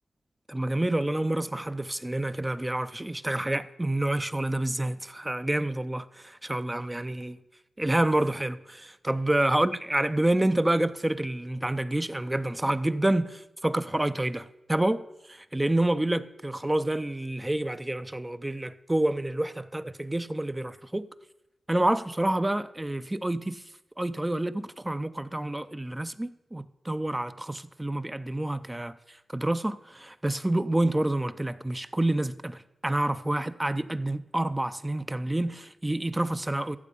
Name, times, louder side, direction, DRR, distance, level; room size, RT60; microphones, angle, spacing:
voice 1, 0.5-7.4 7.8-21.1 21.7-23.6 24.0-36.8, right 1 dB, 15° right, 0.5 m, -28 dB
13.5 x 7.5 x 5.4 m
cardioid pair, 70°, 0 cm